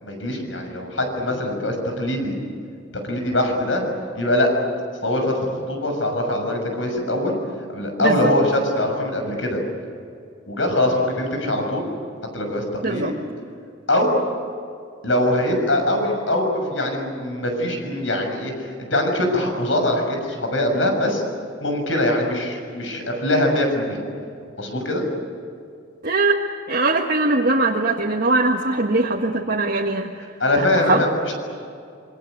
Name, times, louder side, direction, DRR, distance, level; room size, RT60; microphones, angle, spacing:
voice 1, 0.0-2.4 3.0-3.8 4.1-4.5 5.0-5.4 5.7-7.4 7.7-9.6 10.5-11.8 12.3-13.1 13.9-14.1 15.0-21.2 21.6-24.0 24.6-25.0 30.4-31.3, left 1 dB, 80° left, 4 dB, 6.7 m, -22 dB
voice 2, 8.0-8.3 12.8-13.1 26.0-26.4 26.7-30.1 30.8-31.0, right 2 dB, 55° right, -1 dB, 1.7 m, -21 dB
27.0 x 23.5 x 8.1 m, 2.4 s
head